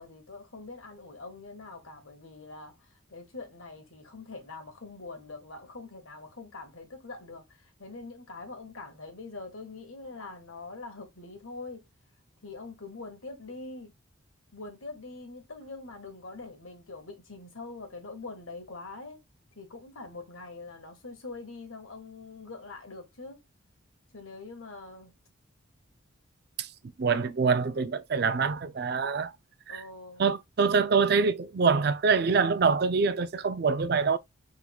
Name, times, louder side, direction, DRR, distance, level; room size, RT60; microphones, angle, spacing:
voice 1, 0.0-11.8 12.4-13.9 14.5-19.2 19.5-23.4 24.1-25.1 29.7-30.3, left 3 dB, 80° left, 1.5 m, -44 dB
voice 2, 27.0-29.3 29.7-29.8 30.2-34.2, right 5 dB, 50° right, 0.4 m, -25 dB
6.2 x 3.6 x 2.3 m
head